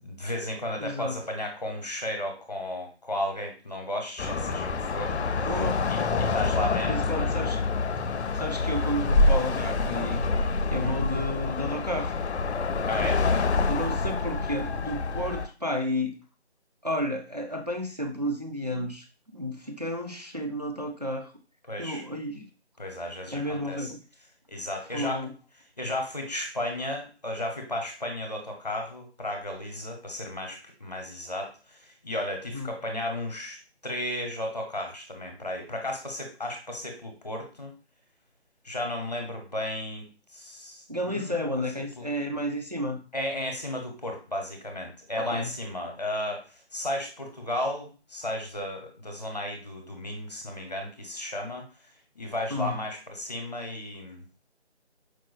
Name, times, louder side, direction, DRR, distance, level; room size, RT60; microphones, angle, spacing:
voice 1, 0.0-5.5 5.9-7.3 10.7-11.0 12.9-13.2 21.7-22.0 22.8-23.9 24.5-25.3 25.8-37.7 38.6-40.1 40.3-41.5 42.0-42.1 43.1-46.4 46.7-51.6 52.2-54.2, left 1 dB, 35° left, 3 dB, 0.7 m, -34 dB
voice 2, 0.8-1.2 5.4-5.8 6.9-7.6 8.3-10.3 10.7-12.1 13.7-16.2 16.8-21.3 21.8-22.5 23.3-24.0 24.9-25.3 32.5-32.7 40.9-43.0 45.2-45.5 52.5-52.8, equal, 40° right, 3 dB, 0.4 m, -32 dB
sound 1, 4.2-15.5, left 3 dB, 70° left, 0.5 m, -26 dB
4.6 x 2.1 x 2.3 m, 0.36 s
figure-of-eight pair, 170°, 35 cm